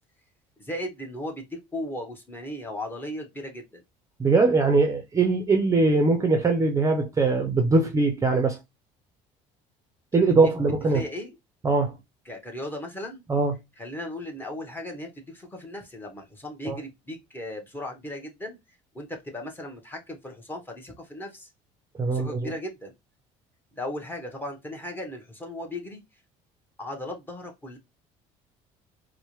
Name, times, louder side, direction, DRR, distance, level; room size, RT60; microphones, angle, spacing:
voice 1, 0.6-3.8 10.2-10.5 10.9-11.4 12.2-13.2 13.8-18.6 18.9-21.5 22.1-22.9 23.7-26.0 26.8-27.8, left 1 dB, 15° left, 1.1 m, -36 dB
voice 2, 4.2-8.6 10.1-11.0 11.6-11.9 13.3-13.5 16.7-16.8 22.0-22.5, right 3 dB, 20° right, 0.6 m, -21 dB
4.4 x 2.2 x 3.1 m
cardioid pair, 120°, 15 cm